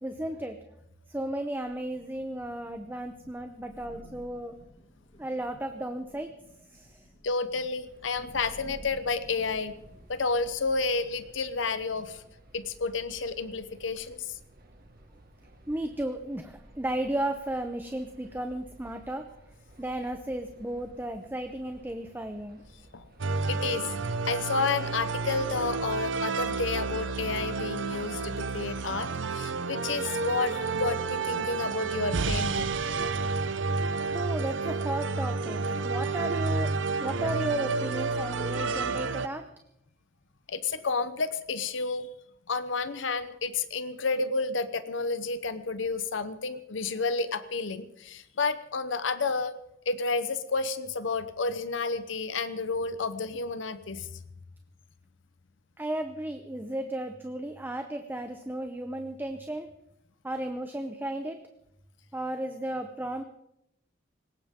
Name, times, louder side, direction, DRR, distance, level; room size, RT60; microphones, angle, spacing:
voice 1, 0.0-0.6 1.1-4.5 5.2-6.3 6.7-7.0 15.7-19.3 19.8-22.6 23.7-23.8 34.1-36.7 37.0-39.4 55.8-59.7 60.2-61.4 62.1-63.2, right 1 dB, 10° right, 6 dB, 0.8 m, -34 dB
Thunder / Rain, 1.4-11.2, equal, 35° left, 3.5 m, -53 dB
voice 2, 7.2-9.7 10.1-12.2 12.5-14.4 22.9-23.1 23.4-23.9 24.3-32.8 40.5-42.1 42.5-49.5 49.9-54.1, left 4 dB, 80° left, 12 dB, 0.9 m, -31 dB
sound 1, 7.9-26.0, right 1 dB, 55° right, 1.8 m, -55 dB
sound 2, 23.2-39.3, right 4 dB, 75° right, 0.8 m, -30 dB
20.0 x 18.0 x 3.7 m, 0.80 s
head